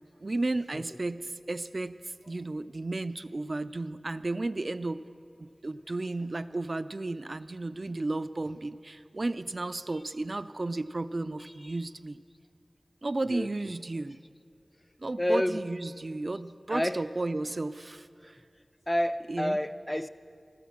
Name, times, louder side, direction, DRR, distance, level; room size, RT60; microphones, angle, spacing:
voice 1, 0.2-2.0 2.3-5.0 5.4-12.2 13.0-14.2 15.0-18.4 19.3-19.6, right 2 dB, 50° right, 12 dB, 0.3 m, -33 dB
voice 2, 15.2-15.6 16.7-17.0 18.9-20.1, left 1 dB, 15° left, 11 dB, 0.4 m, -28 dB
14.5 x 13.0 x 7.2 m, 2.3 s
wide cardioid pair, 70°, 0 cm